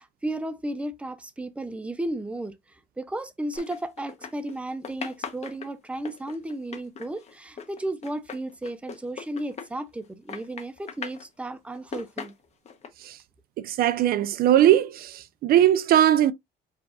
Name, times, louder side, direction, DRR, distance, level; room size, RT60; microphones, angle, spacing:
voice 1, 0.0-12.3, right 1 dB, 5° right, 0.6 m, -34 dB
sound 1, 3.5-4.6 4.8-10.0 10.3-11.3 11.7-12.9, left 6 dB, 40° left, 1.0 m, -39 dB
voice 2, 13.6-16.3, right 11 dB, 60° right, 0.4 m, -20 dB
4.8 x 2.5 x 3.9 m
cardioid pair, 110°, 17 cm